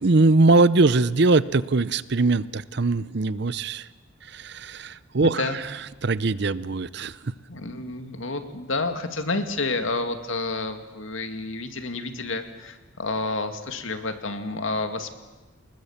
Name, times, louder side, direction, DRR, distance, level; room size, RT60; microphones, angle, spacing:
voice 1, 0.0-3.9 4.2-7.3, right 3 dB, 55° right, 17 dB, 0.7 m, -22 dB
voice 2, 5.2-5.6 7.5-15.1, left 3 dB, 80° left, 7 dB, 2.2 m, -29 dB
28.5 x 20.5 x 7.3 m, 1.2 s
head